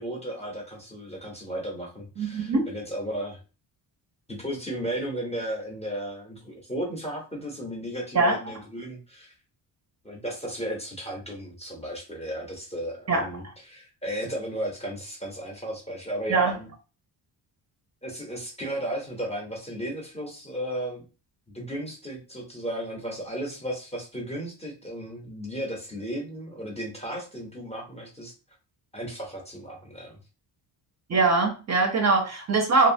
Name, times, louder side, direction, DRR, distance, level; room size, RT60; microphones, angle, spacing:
voice 1, 0.0-3.4 4.3-9.3 10.0-16.7 18.0-21.1 21.5-28.3 28.9-30.2, equal, 15° left, -1 dB, 0.5 m, -34 dB
voice 2, 2.2-2.6 8.1-8.4 13.1-13.3 16.3-16.5 31.1-32.9, right 3 dB, 40° right, 2 dB, 0.5 m, -22 dB
2.7 x 2.1 x 2.5 m, 0.32 s
wide cardioid pair, 170°, 44 cm